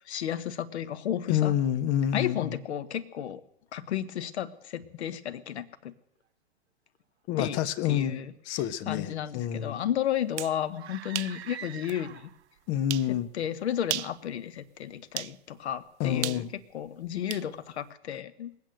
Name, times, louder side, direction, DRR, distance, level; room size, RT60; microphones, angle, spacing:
voice 1, 0.1-1.5 2.1-3.4 3.7-5.9 7.4-7.6 7.8-8.3 8.8-12.3 13.1-16.5 16.7-18.5, left 10 dB, 75° left, 13 dB, 1.2 m, -33 dB
voice 2, 1.3-2.6 7.3-9.8 12.7-13.3 16.0-16.5, left 10 dB, 35° left, 14 dB, 0.9 m, -28 dB
sound 1, 10.2-10.6 11.1-11.4 11.9-12.0 12.9-13.1 13.8-14.2 15.2-15.4 16.2-17.5, right 13 dB, 85° right, 0.5 m, -34 dB
sound 2, 10.7-12.5, right 10 dB, 70° right, 1.2 m, -44 dB
20.0 x 8.9 x 7.8 m, 0.80 s
hypercardioid pair, 130°, 33 cm